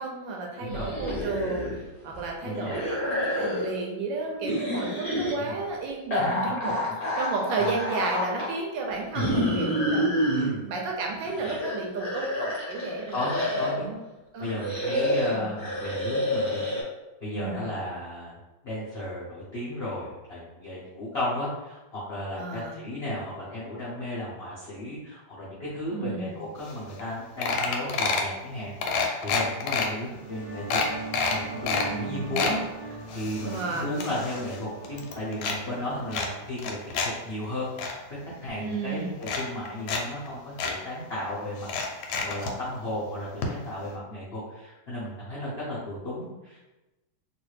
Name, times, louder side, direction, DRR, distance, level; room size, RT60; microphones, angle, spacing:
voice 1, 0.0-6.8 7.1-10.3 10.6-13.2 13.7-14.0 14.3-14.8 15.3-15.5 17.3-17.7 22.4-22.8 25.9-26.4 31.8-32.4 33.4-33.9 38.6-39.2, right 3 dB, 75° right, 0 dB, 1.2 m, -32 dB
voice 2, 0.6-0.9 2.4-2.8 5.3-5.6 6.2-6.3 6.7-6.8 7.6-7.8 9.3-9.6 10.3-10.6 13.1-13.9 14.4-16.6 17.2-18.3 18.6-30.8 31.3-38.0 38.4-41.7 41.9-46.6, left 1 dB, 70° left, -8 dB, 0.6 m, -34 dB
sound 1, 0.7-1.8 2.1-3.8 4.4-5.3 6.1-8.5 9.1-10.5 11.1-13.8 14.4-16.8, equal, 35° left, 0.8 m, -28 dB
sound 2, 26.7-26.8 27.0-27.1 27.4-28.3 28.8-29.9 30.3-30.4 30.7-31.9 32.2-32.6 33.1-34.6 34.8-35.6 36.1-37.1 37.4-37.9 38.7-38.8 39.2-40.0 40.3-40.4 40.6-40.7 41.6-42.5 43.4-43.5 43.8-43.9, left 5 dB, 90° left, 1.4 m, -28 dB
sound 3, 30.0-37.4, right 3 dB, 5° left, 1.1 m, -41 dB
3.1 x 2.6 x 3.1 m, 1.0 s
omnidirectional pair, 2.2 m